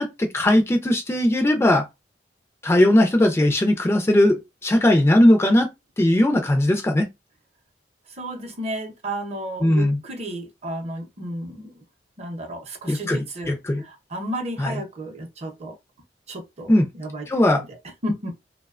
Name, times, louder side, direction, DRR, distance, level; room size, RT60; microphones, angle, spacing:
voice 1, 0.0-1.8 2.6-5.7 6.0-7.1 9.6-10.0 12.9-13.8 14.6-14.7 16.7-16.8 17.3-17.6, left 1 dB, 15° left, 0.3 m, -19 dB
voice 2, 8.2-11.8 12.2-15.8 16.3-17.7 18.0-18.3, right 1 dB, 35° right, 0.6 m, -33 dB
2.6 x 2.1 x 2.4 m
head